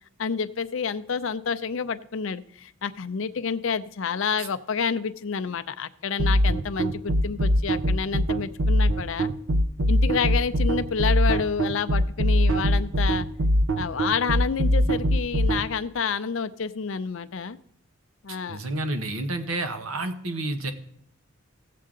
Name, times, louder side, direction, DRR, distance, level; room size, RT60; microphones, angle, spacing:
voice 1, 0.2-9.3 9.9-13.3 13.8-17.6 18.2-18.6, left 6 dB, 65° left, 11 dB, 0.5 m, -29 dB
sound 1, 6.2-15.6, equal, 70° right, 0.7 m, -21 dB
voice 2, 18.5-20.7, right 2 dB, 85° right, 8 dB, 1.2 m, -30 dB
15.5 x 7.6 x 3.8 m, 0.67 s
head